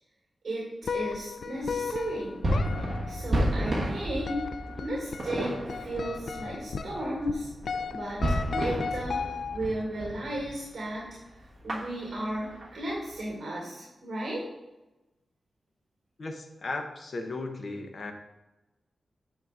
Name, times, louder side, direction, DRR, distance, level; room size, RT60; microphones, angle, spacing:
sound 1, 0.8-9.8, left 5 dB, 70° left, 0.3 m, -36 dB
voice 1, 0.9-2.3 3.1-4.4 4.8-7.5 7.9-9.2 9.5-14.4, right 1 dB, 60° right, -5 dB, 2.2 m, -34 dB
sound 2, 1.6-10.6 10.9-11.0 11.4-13.2, right 1 dB, 45° right, 1.4 m, -32 dB
voice 2, 16.2-18.1, left 3 dB, 45° left, 4 dB, 0.9 m, -36 dB
9.2 x 5.7 x 2.5 m, 1.0 s
wide cardioid pair, 155°, 0 cm